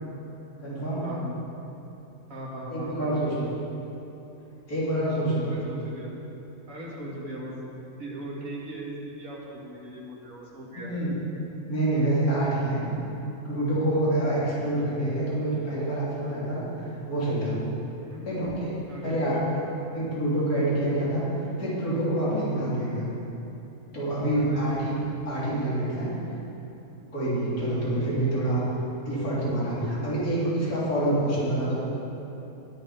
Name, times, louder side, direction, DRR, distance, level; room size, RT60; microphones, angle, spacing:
voice 1, 0.6-1.1 2.7-3.5 4.7-5.5 10.8-11.2 11.7-12.8 13.4-16.6 17.1-17.6 18.3-19.7 19.9-21.3 21.6-23.1 23.9-24.9 25.3-26.2 27.1-28.6 29.1-31.7, right 1 dB, 70° left, -9 dB, 4.0 m, -27 dB
voice 2, 2.3-3.4 5.4-6.1 6.7-7.5 8.0-10.9 18.0-18.2 18.9-19.7 24.3-24.7, right 1 dB, 60° right, -3 dB, 2.5 m, -39 dB
19.5 x 7.1 x 5.2 m, 3.0 s
omnidirectional pair, 1.6 m